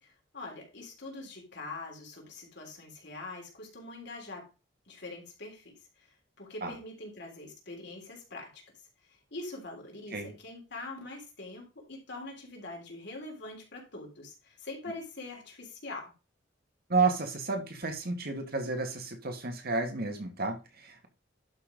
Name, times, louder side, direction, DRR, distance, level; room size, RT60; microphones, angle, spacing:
voice 1, 0.0-4.5 4.9-6.1 6.4-8.6 9.1-16.1, left 2 dB, 60° left, 3.6 m, -44 dB
voice 2, 16.9-21.1, right 3 dB, 55° right, 1.8 m, -31 dB
11.5 x 4.1 x 5.2 m
head